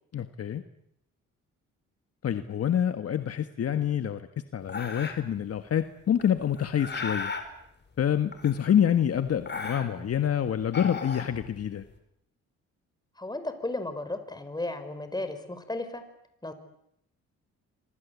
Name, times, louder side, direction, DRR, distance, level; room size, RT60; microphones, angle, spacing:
voice 1, 0.1-0.6 2.2-7.3 8.0-11.8, left 9 dB, 55° left, 9 dB, 1.5 m, -27 dB
sound 1, 4.7-5.4 6.2-7.5 8.3-9.0 9.3-10.2 10.6-11.8, left 4 dB, 35° left, 5.1 m, -36 dB
voice 2, 13.2-16.0 16.4-16.5, left 2 dB, 15° left, 9 dB, 5.2 m, -34 dB
27.0 x 25.0 x 8.4 m, 0.76 s
cardioid pair, 90°, 30 cm